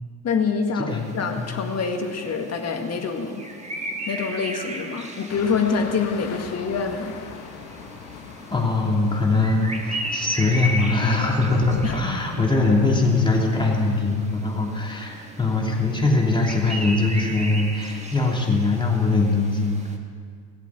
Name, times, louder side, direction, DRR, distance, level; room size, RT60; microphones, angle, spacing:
voice 1, 0.2-3.4 4.1-7.2 11.8-12.0, left 5 dB, 30° left, 4 dB, 1.9 m, -26 dB
sound 1, 0.9-20.0, right 1 dB, 15° right, 1.6 m, -36 dB
sound 2, 5.3-14.0, left 7 dB, 55° left, 1.4 m, -41 dB
voice 2, 8.5-19.8, left 3 dB, 10° left, -1 dB, 2.9 m, -22 dB
18.0 x 8.1 x 7.3 m, 2.1 s
hypercardioid pair, 70°, 47 cm